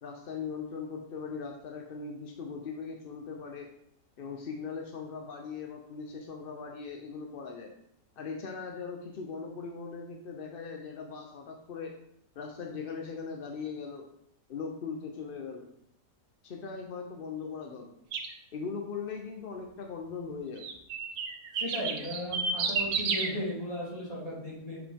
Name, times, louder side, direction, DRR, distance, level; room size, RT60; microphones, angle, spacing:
voice 1, 0.0-3.7 4.2-7.7 8.2-11.9 12.3-14.1 14.5-15.7 16.4-17.9 18.5-20.7, left 5 dB, 65° left, 2 dB, 0.5 m, -39 dB
sound 1, 18.1-18.3 20.6-23.3, right 5 dB, 75° right, 1.2 m, -31 dB
voice 2, 21.6-24.8, left 1 dB, 20° left, -8 dB, 2.8 m, -36 dB
5.9 x 4.9 x 3.5 m, 0.72 s
omnidirectional pair, 1.8 m